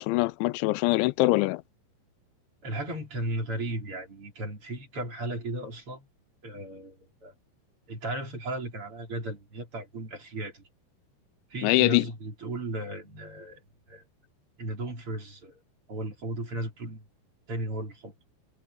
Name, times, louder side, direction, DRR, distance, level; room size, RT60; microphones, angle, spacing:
voice 1, 0.0-1.6 11.6-12.1, left 21 dB, 90° left, 3.0 m, -23 dB
voice 2, 2.6-6.1 6.4-7.3 7.9-10.6 11.5-14.0 14.6-15.6 15.9-17.1 17.5-18.1, right 1 dB, 30° right, 4.6 m, -35 dB
omnidirectional pair, 5.2 m